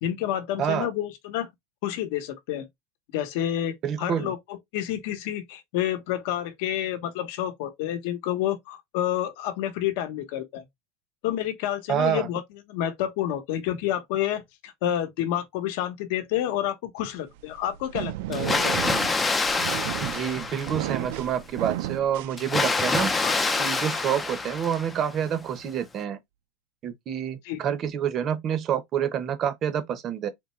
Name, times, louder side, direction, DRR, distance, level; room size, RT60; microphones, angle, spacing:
voice 1, 0.0-1.5 1.8-2.7 3.1-10.6 11.2-12.4 12.7-18.8 23.2-23.3 27.4-27.6, left 11 dB, 55° left, 0.9 m, -29 dB
voice 2, 0.6-0.9 3.8-4.3 11.9-12.3 20.0-23.1 23.6-26.2 26.8-30.3, right 8 dB, 25° right, 0.7 m, -27 dB
sound 1, 17.3-23.0, right 14 dB, 60° right, 0.4 m, -33 dB
Water, 18.3-21.1 22.4-25.2, left 3 dB, 10° left, 0.4 m, -26 dB
3.8 x 3.3 x 3.0 m
supercardioid pair, 170°, 0 cm